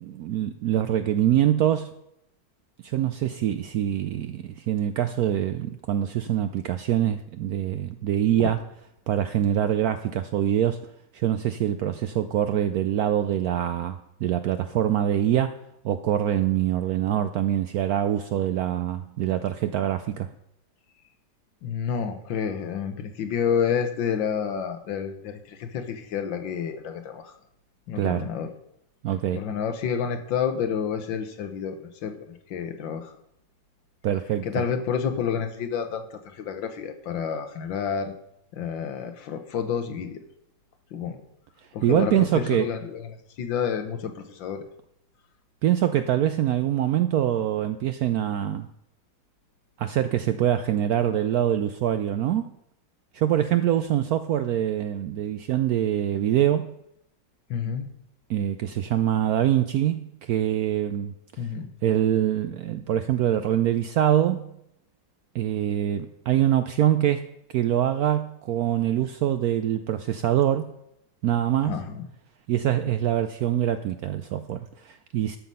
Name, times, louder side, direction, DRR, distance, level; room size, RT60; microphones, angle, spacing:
voice 1, 0.0-1.9 2.8-8.6 9.1-10.8 11.1-15.6 15.8-20.3 28.0-28.3 29.0-29.4 34.0-34.5 41.8-42.7 45.6-48.7 49.8-52.5 53.1-56.7 58.3-61.1 61.8-64.5 65.3-67.3 67.5-70.7 71.2-71.8 72.5-75.4, right 11 dB, 75° right, 10 dB, 0.8 m, -24 dB
voice 2, 21.6-27.4 27.9-28.5 29.3-33.2 34.4-38.2 38.5-40.2 40.9-41.2 41.7-43.1 43.4-44.6 57.5-57.9 61.4-61.7 71.6-72.1, left 7 dB, 80° left, 8 dB, 1.8 m, -29 dB
12.5 x 5.9 x 5.5 m, 0.78 s
omnidirectional pair, 2.1 m